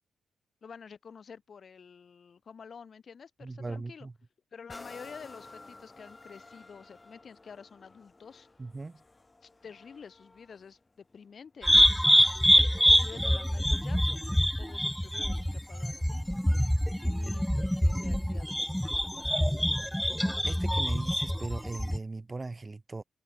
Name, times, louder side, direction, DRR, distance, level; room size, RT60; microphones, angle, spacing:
voice 1, 0.6-4.1 4.5-8.5 9.4-12.3 12.9-16.4 16.9-20.0, left 6 dB, 55° left, 7.7 m, -50 dB
voice 2, 3.4-4.1 8.6-9.0 12.7-12.8 20.4-23.0, right 3 dB, 30° right, 4.0 m, -39 dB
sound 1, 4.7-12.3 12.9-13.0, left 3 dB, 30° left, 5.7 m, -53 dB
sound 2, 11.6-22.0, equal, 5° left, 0.5 m, -25 dB
supercardioid pair, 45°, 0 cm